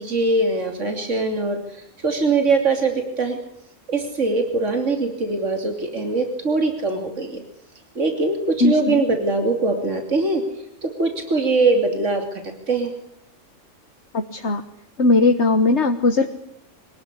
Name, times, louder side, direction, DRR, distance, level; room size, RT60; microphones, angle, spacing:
voice 1, 0.0-3.4 3.9-7.4 7.9-10.4 10.8-12.4 12.7-12.9, right 3 dB, 70° right, 5 dB, 3.3 m, -22 dB
voice 2, 8.6-9.0 14.1-14.6 15.0-16.3, left 3 dB, 60° left, 6 dB, 1.7 m, -18 dB
24.5 x 19.5 x 9.9 m, 0.73 s
omnidirectional pair, 1.3 m